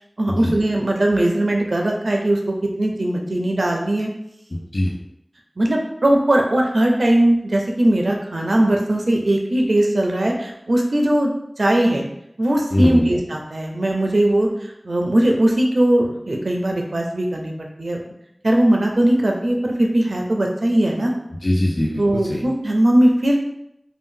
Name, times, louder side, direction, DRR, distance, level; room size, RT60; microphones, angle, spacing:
voice 1, 0.2-4.1 5.6-11.3 11.6-12.0 12.4-18.0 18.4-21.1 22.0-23.4, right 1 dB, 90° right, 1 dB, 0.4 m, -19 dB
voice 2, 4.5-4.9 12.7-13.1 21.4-22.4, left 1 dB, 75° left, -4 dB, 0.4 m, -22 dB
2.6 x 2.1 x 3.6 m, 0.79 s
wide cardioid pair, 45°, 0 cm